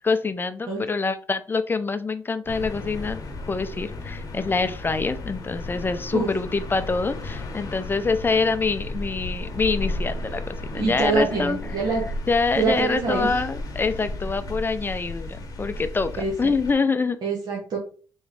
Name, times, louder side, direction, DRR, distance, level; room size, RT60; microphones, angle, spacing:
voice 1, 0.0-3.2 3.5-17.2, left 4 dB, 25° left, 11 dB, 0.5 m, -26 dB
sound 1, 2.5-16.7, left 2 dB, 45° left, 0.9 m, -34 dB
voice 2, 10.7-12.0 12.6-13.3 16.2-16.3 17.2-17.8, right 4 dB, 60° right, -2 dB, 1.0 m, -25 dB
3.5 x 3.1 x 3.2 m, 0.40 s
cardioid pair, 75°, 8 cm